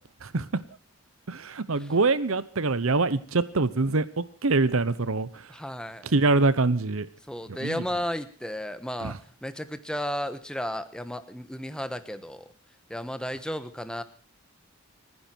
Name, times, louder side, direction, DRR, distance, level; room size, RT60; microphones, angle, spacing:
voice 1, 0.2-0.6 1.3-5.3 6.0-7.1 7.5-7.8 9.0-9.1, right 3 dB, 70° right, 16 dB, 0.9 m, -24 dB
voice 2, 5.5-6.1 7.3-9.1 9.4-12.5 12.9-14.0, equal, 5° left, 11 dB, 1.2 m, -33 dB
29.5 x 11.0 x 4.4 m, 0.40 s
head